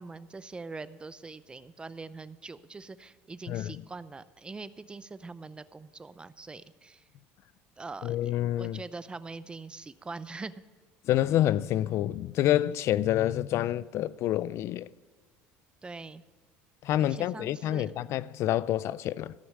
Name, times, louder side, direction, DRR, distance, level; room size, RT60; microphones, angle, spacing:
voice 1, 0.0-7.1 7.8-10.5 15.8-16.2 17.0-17.9, right 3 dB, 15° right, 0.5 m, -43 dB
voice 2, 8.0-8.8 11.1-14.9 16.8-19.3, left 13 dB, 55° left, 0.3 m, -27 dB
14.5 x 6.2 x 7.4 m
supercardioid pair, 105°, 6 cm